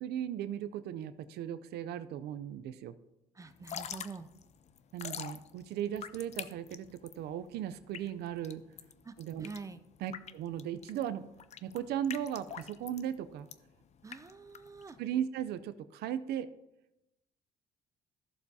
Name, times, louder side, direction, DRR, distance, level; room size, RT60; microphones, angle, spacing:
voice 1, 0.0-3.0 4.9-8.6 9.2-9.5 10.0-11.2 11.6-13.5 15.0-16.5, right 10 dB, 75° right, 13 dB, 0.5 m, -37 dB
voice 2, 3.3-4.3 9.0-9.9 14.0-15.0, right 4 dB, 20° right, 10 dB, 0.5 m, -46 dB
Drip / Trickle dribble, 3.5-15.1, left 8 dB, 40° left, 0.5 m, -46 dB
14.0 x 6.9 x 2.8 m, 0.92 s
cardioid pair, 110°, 17 cm